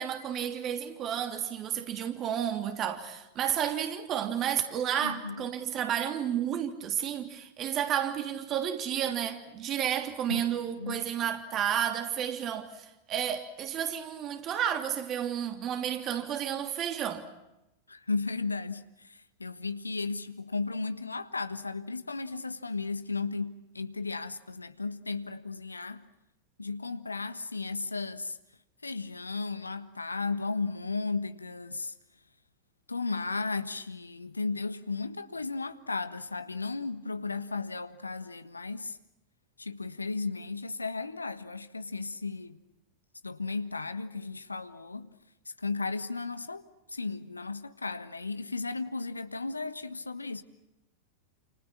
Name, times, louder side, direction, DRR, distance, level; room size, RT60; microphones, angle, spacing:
voice 1, 0.0-17.3, right 9 dB, 30° right, 3.1 m, -31 dB
voice 2, 5.0-5.5 10.3-11.0 17.9-26.1 26.6-28.4 28.8-31.9 32.9-39.0 39.6-42.6 43.2-45.1 45.6-46.6 46.9-50.4, left 3 dB, 80° left, 1.4 m, -35 dB
29.5 x 28.5 x 6.0 m
figure-of-eight pair, 90°, 0 cm